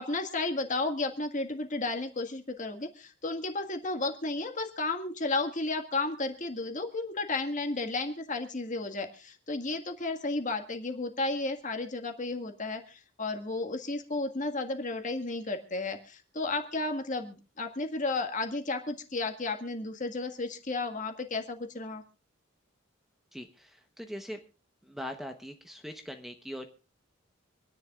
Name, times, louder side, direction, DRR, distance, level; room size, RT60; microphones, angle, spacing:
voice 1, 0.0-22.0, left 3 dB, 40° left, 5 dB, 1.8 m, -33 dB
voice 2, 23.3-24.4 24.9-26.7, equal, ahead, 5 dB, 1.0 m, -41 dB
26.5 x 10.5 x 2.4 m, 0.34 s
head